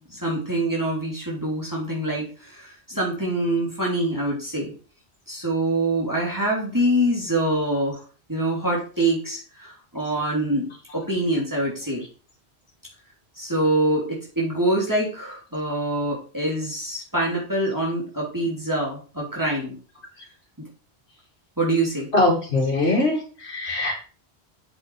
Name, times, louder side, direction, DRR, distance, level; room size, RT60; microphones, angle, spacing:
voice 1, 0.1-4.7 5.3-8.0 8.3-10.7 10.9-12.0 13.4-19.7 21.6-22.1, right 1 dB, 15° right, -3 dB, 2.8 m, -25 dB
voice 2, 22.1-24.1, left 2 dB, 75° left, -5 dB, 2.6 m, -22 dB
8.0 x 6.0 x 4.7 m, 0.37 s
omnidirectional pair, 1.1 m